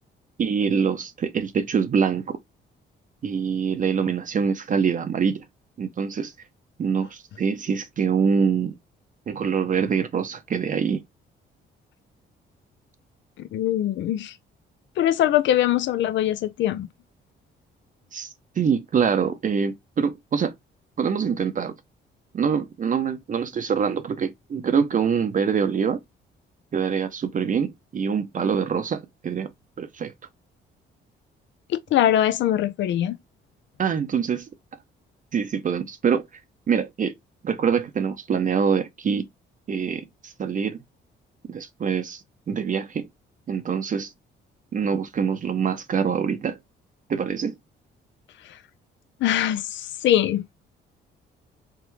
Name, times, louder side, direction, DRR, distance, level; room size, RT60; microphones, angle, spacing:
voice 1, 0.4-2.4 3.2-5.4 5.8-6.3 6.8-8.8 9.3-11.0 18.1-20.5 21.0-21.7 22.3-26.0 26.7-29.5 29.8-30.1 33.8-34.5 35.3-36.3 36.7-37.1 37.4-39.3 39.7-40.8 41.5-43.1 43.5-44.1 44.7-46.6 47.1-47.5, right 6 dB, 40° right, 0.6 m, -25 dB
voice 2, 13.5-14.4 15.0-16.9 31.7-33.2 48.4-48.6 49.2-50.5, left 12 dB, 70° left, 0.5 m, -22 dB
3.6 x 3.5 x 3.0 m
cardioid pair, 90°, 20 cm